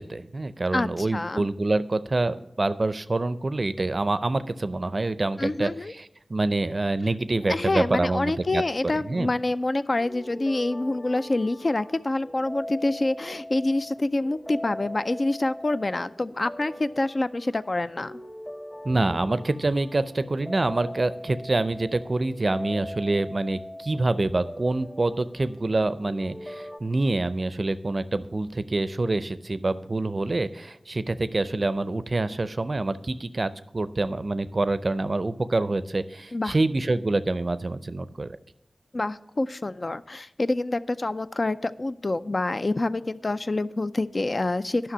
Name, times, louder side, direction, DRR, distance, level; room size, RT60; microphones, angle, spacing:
voice 1, 0.0-9.3 18.8-38.4, right 2 dB, 45° right, 14 dB, 0.4 m, -26 dB
voice 2, 0.7-1.5 5.4-5.9 7.5-18.1 36.3-36.5 38.9-44.9, left 2 dB, 45° left, 13 dB, 0.3 m, -27 dB
sound 1, 9.2-26.8, left 1 dB, 25° left, 1.4 m, -41 dB
10.0 x 5.9 x 6.1 m, 0.83 s
wide cardioid pair, 60°, 0 cm